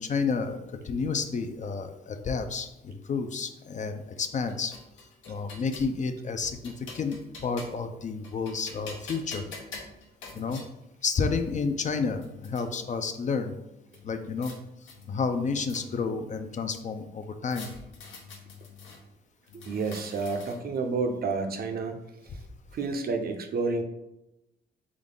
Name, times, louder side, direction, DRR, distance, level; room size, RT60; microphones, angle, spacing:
voice 1, 0.0-4.7 5.0-9.4 10.3-10.6 11.0-13.6 14.0-14.5 14.8-17.7, left 5 dB, 40° left, 8 dB, 0.4 m, -31 dB
sound 1, 4.2-5.9 6.4-7.9 8.2-10.7 11.4-11.5 11.8-12.6 13.9-14.6 14.9-16.1 17.5-19.0 19.5-20.8, left 4 dB, 75° left, 0.9 m, -46 dB
voice 2, 19.5-22.4 22.7-23.8, right 4 dB, 50° right, 6 dB, 0.6 m, -30 dB
3.7 x 3.5 x 3.7 m, 0.91 s
cardioid pair, 90°, 20 cm